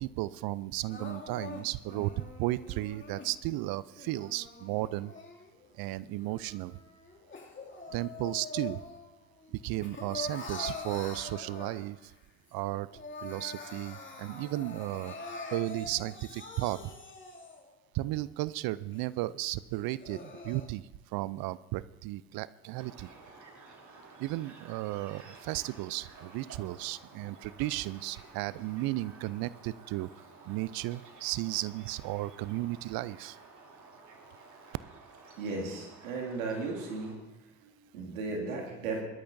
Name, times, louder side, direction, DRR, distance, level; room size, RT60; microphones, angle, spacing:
voice 1, 0.0-5.1 5.7-6.8 7.9-8.8 9.5-12.1 12.5-12.9 13.2-15.2 15.5-16.9 17.9-23.1 24.2-30.1 30.4-33.4, right 17 dB, 65° right, 18 dB, 0.5 m, -34 dB
Crying sobbing, 0.9-3.3 3.9-5.7 6.2-9.1 9.4-12.1 12.5-12.6 12.9-17.7 18.3-18.4 18.9-19.0 19.7-20.7, left 3 dB, 30° left, 2.5 m, -44 dB
sound 1, 22.7-37.1, right 3 dB, 50° right, 3.1 m, -53 dB
voice 2, 35.4-37.2 37.6-39.1, right 3 dB, 90° right, 0 dB, 2.4 m, -36 dB
21.0 x 13.0 x 2.7 m, 1.1 s
hypercardioid pair, 55°, 39 cm